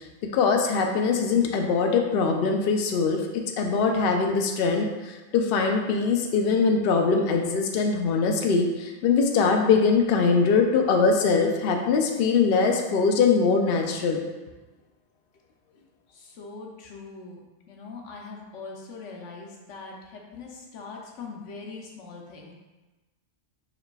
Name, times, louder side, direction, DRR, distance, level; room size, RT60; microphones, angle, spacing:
voice 1, 0.3-3.2 3.6-14.2, left 5 dB, 60° left, 3 dB, 0.7 m, -22 dB
voice 2, 16.1-22.5, left 4 dB, 85° left, 0 dB, 1.0 m, -42 dB
4.9 x 3.1 x 2.2 m, 1.2 s
omnidirectional pair, 1.2 m